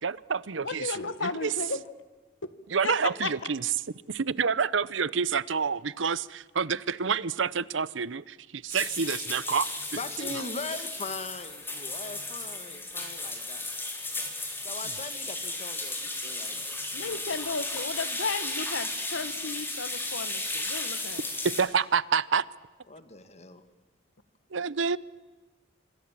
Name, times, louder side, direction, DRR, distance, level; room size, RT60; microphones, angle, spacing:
voice 1, 0.0-1.5 2.7-3.7 4.1-9.7 21.4-22.4 24.5-25.0, right 6 dB, 75° right, 20 dB, 0.8 m, -28 dB
voice 2, 0.6-1.8 2.8-3.3 16.9-21.3, left 4 dB, 90° left, 13 dB, 1.7 m, -34 dB
sound 1, 8.7-21.6, left 2 dB, 10° left, 4.3 m, -35 dB
voice 3, 9.9-13.6 14.6-16.7 22.9-23.6, left 3 dB, 35° left, 10 dB, 2.0 m, -40 dB
26.5 x 24.5 x 7.5 m, 1.3 s
head